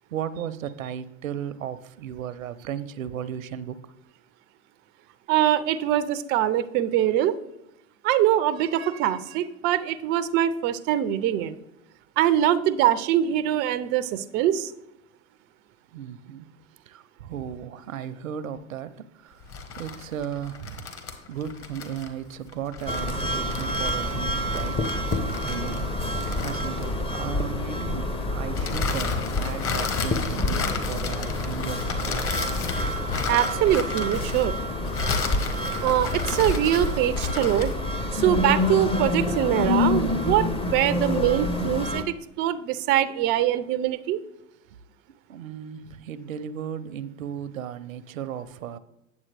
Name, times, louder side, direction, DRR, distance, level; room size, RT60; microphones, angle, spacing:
voice 1, 0.1-3.8 15.9-16.5 16.9-19.4 19.8-20.9 21.3-25.9 26.4-32.5 45.3-48.8, right 9 dB, 80° right, 15 dB, 0.6 m, -35 dB
voice 2, 5.3-7.4 8.0-11.5 12.2-14.7 33.3-34.5 35.8-37.7 38.1-44.2, right 11 dB, 30° right, 13 dB, 0.4 m, -23 dB
sound 1, 19.4-27.2 28.5-37.8, left 5 dB, 35° left, 1.3 m, -33 dB
sound 2, 22.9-42.0, left 1 dB, 15° left, 0.6 m, -28 dB
9.0 x 7.2 x 3.3 m, 0.85 s
hypercardioid pair, 95°, 39 cm